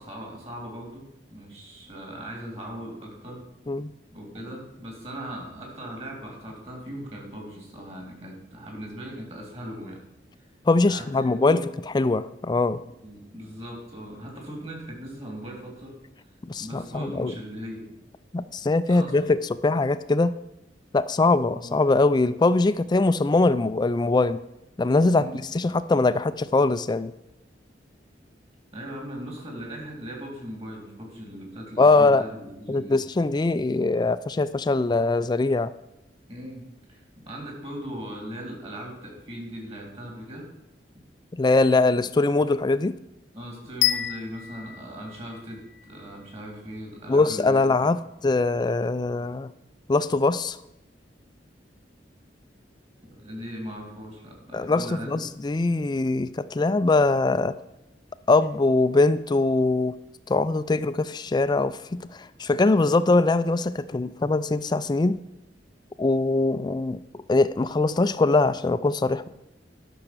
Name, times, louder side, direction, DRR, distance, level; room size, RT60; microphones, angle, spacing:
voice 1, 0.0-3.4 4.1-10.0 10.9-11.6 13.0-15.9 16.6-17.8 18.9-19.2 21.5-21.6 25.1-25.4 28.7-32.9 36.3-36.6 36.9-40.5 41.9-42.0 43.3-47.7 53.0-55.2, equal, 35° right, 0 dB, 3.4 m, -39 dB
voice 2, 10.7-11.6 11.9-12.8 16.5-17.3 18.3-20.3 20.9-24.4 24.8-25.3 25.5-27.1 31.8-32.2 32.7-35.7 41.4-43.0 47.1-48.0 48.2-49.5 49.9-50.6 54.5-57.5 58.3-60.0 60.3-65.2 66.0-67.0 67.3-69.3, left 3 dB, 25° left, 14 dB, 0.4 m, -22 dB
sound 1, 43.8-45.9, left 13 dB, 90° left, 0.7 m, -27 dB
12.0 x 6.2 x 6.1 m, 0.91 s
head